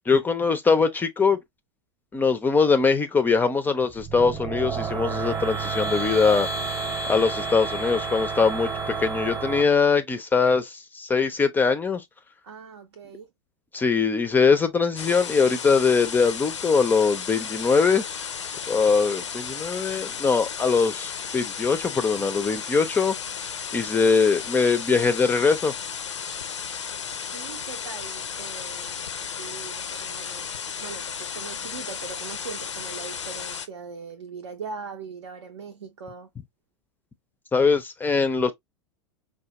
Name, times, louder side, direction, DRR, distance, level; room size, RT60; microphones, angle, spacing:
voice 1, 0.0-1.4 2.1-6.5 7.1-12.0 13.7-18.0 18.7-23.1 23.7-25.7 37.5-38.5, left 5 dB, 10° left, 0.4 m, -22 dB
sound 1, 3.9-9.6, right 4 dB, 20° right, 0.8 m, -30 dB
voice 2, 12.4-13.3 27.3-36.3, right 5 dB, 65° right, 0.6 m, -40 dB
sound 2, 15.0-33.7, left 7 dB, 75° left, 0.5 m, -34 dB
4.7 x 2.2 x 2.8 m
figure-of-eight pair, 85°, 15 cm